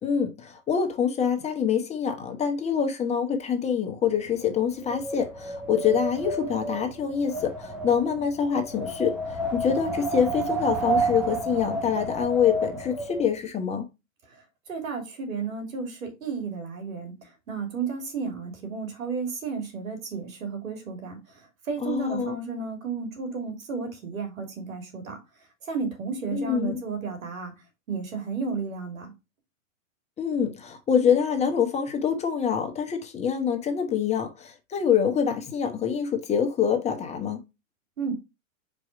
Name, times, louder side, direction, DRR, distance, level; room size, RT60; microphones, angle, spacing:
voice 1, 0.0-13.8 21.8-22.3 26.3-26.8 30.2-37.4, left 7 dB, 15° left, 0.9 m, -25 dB
Wind, 4.1-13.3, right 2 dB, 5° right, 0.3 m, -31 dB
voice 2, 14.7-17.1 17.5-21.2 21.7-25.2 25.7-27.5 27.9-29.1 38.0-38.1, right 5 dB, 85° right, 3.1 m, -32 dB
4.9 x 4.5 x 4.9 m
hypercardioid pair, 130°, 40 cm